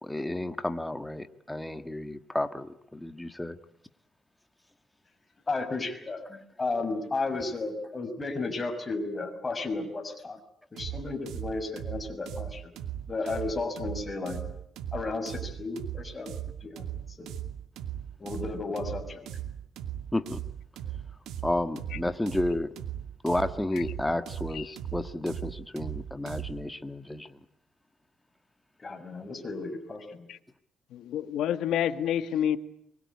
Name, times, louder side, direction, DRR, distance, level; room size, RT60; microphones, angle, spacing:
voice 1, 0.0-3.6 20.1-20.4 21.4-22.7 23.2-27.4, left 1 dB, 10° left, 1.7 m, -31 dB
voice 2, 5.5-10.4 10.7-12.7 13.1-14.4 14.9-16.3 16.6-17.3 18.2-19.3 28.8-30.3, left 3 dB, 25° left, 6.3 m, -33 dB
sound 1, 10.8-26.7, right 10 dB, 80° right, 2.4 m, -38 dB
voice 3, 30.9-32.6, left 10 dB, 80° left, 1.7 m, -28 dB
24.0 x 23.0 x 9.7 m
cardioid pair, 90°, 0 cm